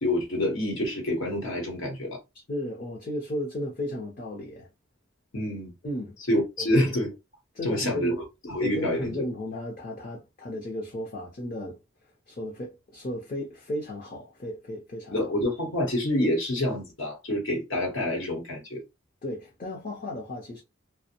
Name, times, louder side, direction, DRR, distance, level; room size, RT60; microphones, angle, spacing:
voice 1, 0.0-2.2 5.3-5.7 6.3-7.1 7.6-8.2 8.5-9.1 15.1-18.8, left 1 dB, 70° left, 1.0 m, -27 dB
voice 2, 2.3-4.7 5.8-6.2 6.6-6.9 7.5-8.2 8.6-11.8 12.3-15.3 19.2-20.6, left 1 dB, 40° left, 0.6 m, -34 dB
2.5 x 2.1 x 2.7 m
head